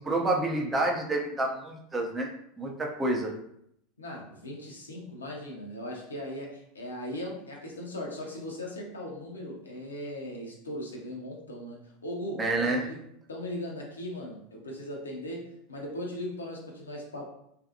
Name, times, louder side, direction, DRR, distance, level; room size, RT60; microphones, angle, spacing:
voice 1, 0.0-2.3 2.6-3.3 12.4-12.8, right 2 dB, 15° right, 0 dB, 0.5 m, -28 dB
voice 2, 4.0-13.0 13.3-17.3, left 1 dB, 80° left, -1 dB, 0.6 m, -38 dB
2.5 x 2.3 x 2.5 m, 0.72 s
figure-of-eight pair, 80°, 0 cm